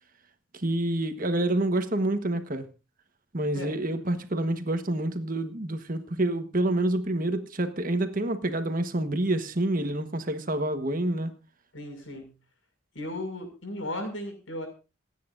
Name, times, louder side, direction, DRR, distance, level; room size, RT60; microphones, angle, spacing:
voice 1, 0.6-2.6 3.3-11.3, right 1 dB, 45° right, 1.3 m, -27 dB
voice 2, 3.5-4.2 11.7-12.3 12.9-14.7, left 1 dB, 80° left, 6.2 m, -36 dB
27.5 x 9.4 x 2.6 m
head